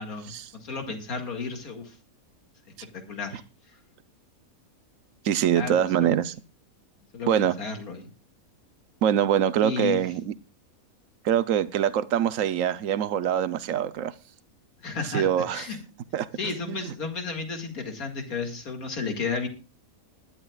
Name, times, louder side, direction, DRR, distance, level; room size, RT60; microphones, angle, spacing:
voice 1, 0.0-2.0 2.9-3.4 5.5-6.1 7.1-8.1 9.6-10.0 14.8-15.8 16.4-19.5, left 5 dB, 80° left, 2.6 m, -33 dB
voice 2, 5.2-6.3 7.3-7.5 9.0-10.3 11.2-14.1 15.1-15.6 16.1-16.9, right 9 dB, 70° right, 1.1 m, -24 dB
20.0 x 11.5 x 2.4 m
omnidirectional pair, 1.5 m